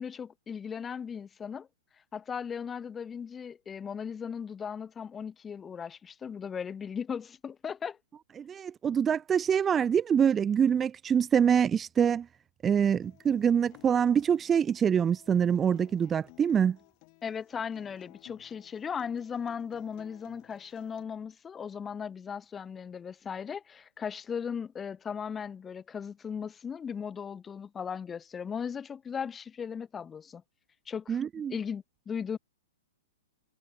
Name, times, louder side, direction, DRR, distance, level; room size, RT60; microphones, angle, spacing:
voice 1, 0.0-1.7 2.1-8.0 17.2-30.4 30.9-31.2 31.5-32.4, left 7 dB, 15° left, 0.9 m, -37 dB
voice 2, 8.4-12.3 12.6-16.8 31.1-31.5, right 8 dB, 20° right, 0.4 m, -25 dB
Acoustic guitar, 13.0-21.0, left 40 dB or more, 40° left, 5.9 m, -57 dB
hypercardioid pair, 125°, 0 cm